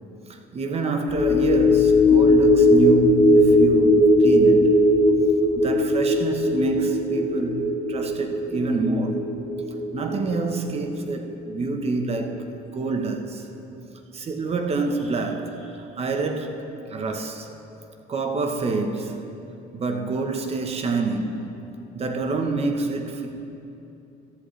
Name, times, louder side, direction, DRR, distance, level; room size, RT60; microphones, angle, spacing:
voice 1, 0.3-4.8 5.5-9.3 9.9-13.5 14.1-16.6 16.9-17.5 18.1-19.2 19.7-21.7 21.9-23.3, right 3 dB, 35° right, 4 dB, 1.0 m, -27 dB
sound 1, 1.1-11.7 12.0-12.2, left 1 dB, 30° left, 1.3 m, -19 dB
14.5 x 11.0 x 3.3 m, 2.8 s
cardioid pair, 110°, 17 cm